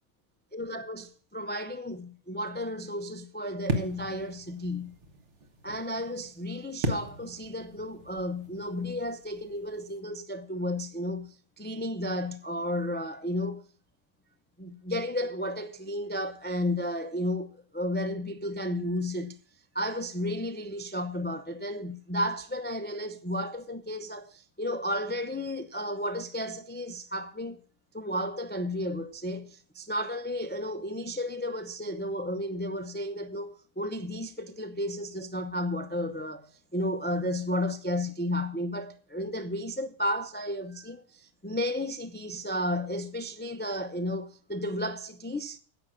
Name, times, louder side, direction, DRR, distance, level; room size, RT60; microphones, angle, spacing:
voice 1, 0.5-4.9 5.6-11.3 11.6-13.6 14.6-19.4 19.7-27.6 27.9-36.5 36.7-45.6, left 1 dB, 10° left, 0.5 m, -33 dB
sound 1, 3.6-10.0, right 2 dB, 55° right, 1.9 m, -37 dB
10.5 x 7.9 x 7.6 m
omnidirectional pair, 1.5 m